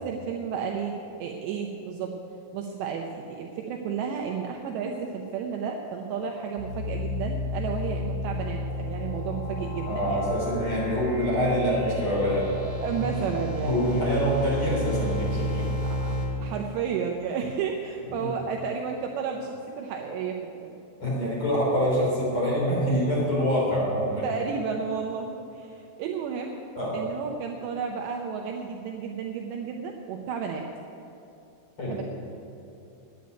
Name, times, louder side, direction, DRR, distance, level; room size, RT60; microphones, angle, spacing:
voice 1, 0.0-2.2 2.5-10.2 12.8-13.9 15.8-16.2 16.4-20.8 24.2-26.6 26.9-30.7 31.9-32.0, right 6 dB, 80° right, 2 dB, 2.7 m, -32 dB
sound 1, 6.6-16.3, left 1 dB, 30° right, 2.7 m, -32 dB
voice 2, 9.8-12.5 13.0-13.1 13.6-15.7 18.2-18.3 21.0-24.2 26.8-27.0 31.8-32.0, equal, 30° left, -6 dB, 3.8 m, -25 dB
10.5 x 9.2 x 9.3 m, 2.8 s
omnidirectional pair, 5.7 m